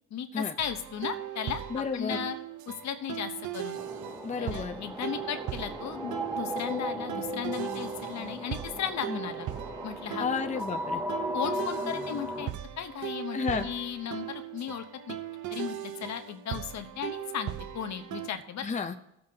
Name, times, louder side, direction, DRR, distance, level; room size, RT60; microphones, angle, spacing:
voice 1, 0.1-1.6 1.9-2.4 2.7-3.8 4.4-9.5 9.8-10.3 11.3-12.5 12.8-15.2 15.5-18.6, left 8 dB, 65° left, 8 dB, 0.9 m, -36 dB
sound 1, 0.6-18.3, right 11 dB, 75° right, 0.8 m, -39 dB
voice 2, 1.7-2.3 4.2-4.8 9.1-9.2 10.2-11.0 13.3-13.7 18.6-18.9, left 5 dB, 25° left, 5 dB, 0.7 m, -31 dB
sound 2, 3.8-12.5, equal, 10° right, 0.8 m, -36 dB
17.0 x 7.8 x 2.8 m, 0.81 s
cardioid pair, 90°, 30 cm